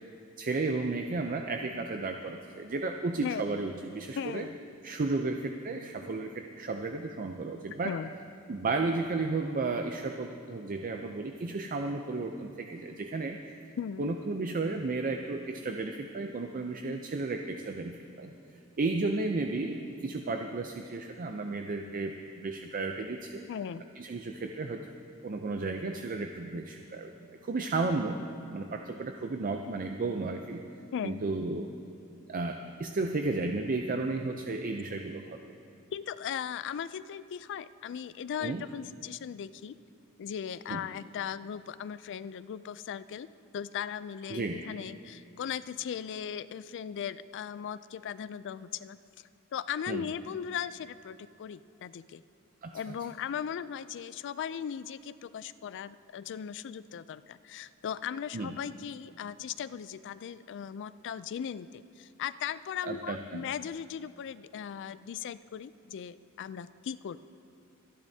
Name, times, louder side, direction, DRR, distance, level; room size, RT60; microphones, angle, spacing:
voice 1, 0.4-4.5 4.8-7.9 8.5-13.4 14.0-18.3 18.8-23.4 24.0-24.9 25.2-27.1 27.4-28.2 28.5-30.6 31.0-31.7 32.3-35.4 38.4-38.6 40.7-40.9 44.3-44.6 49.9-50.0 52.6-52.7 58.3-58.5 62.8-63.5, right 3 dB, 40° right, 5 dB, 0.5 m, -33 dB
voice 2, 4.2-4.6 7.8-8.1 13.8-14.1 23.5-23.8 30.9-31.2 35.9-39.8 40.2-43.3 43.5-49.0 49.5-52.2 52.7-67.2, left 8 dB, 55° left, 16 dB, 0.3 m, -38 dB
26.0 x 10.5 x 2.8 m, 2.8 s
head